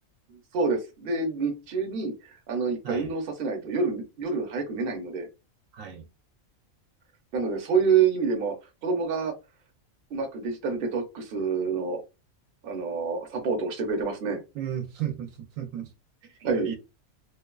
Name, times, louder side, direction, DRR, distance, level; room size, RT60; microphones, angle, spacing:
voice 1, 0.5-5.3 7.3-8.5 8.8-9.3 10.1-12.0 12.6-14.4 16.4-16.7, right 5 dB, 50° right, 0.8 m, -27 dB
voice 2, 5.7-6.1 14.5-15.9 16.2-16.8, right 10 dB, 80° right, 0.9 m, -34 dB
2.5 x 2.2 x 2.2 m
omnidirectional pair, 1.4 m